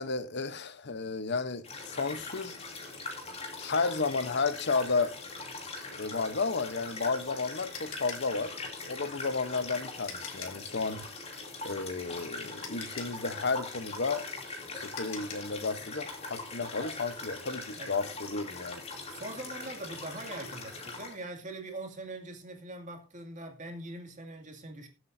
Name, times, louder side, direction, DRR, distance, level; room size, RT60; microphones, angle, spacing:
voice 1, 0.0-2.6 3.6-5.1 5.9-8.5 8.8-11.1 11.6-14.2 14.7-18.8, left 4 dB, 55° left, 0.9 m, -32 dB
sound 1, 1.6-21.2, left 3 dB, 30° left, 2.9 m, -42 dB
sound 2, 7.7-10.7 12.1-12.2 12.6-15.6, left 7 dB, 75° left, 2.5 m, -45 dB
voice 2, 19.1-24.9, right 2 dB, 40° right, 2.3 m, -42 dB
21.0 x 8.1 x 2.7 m
head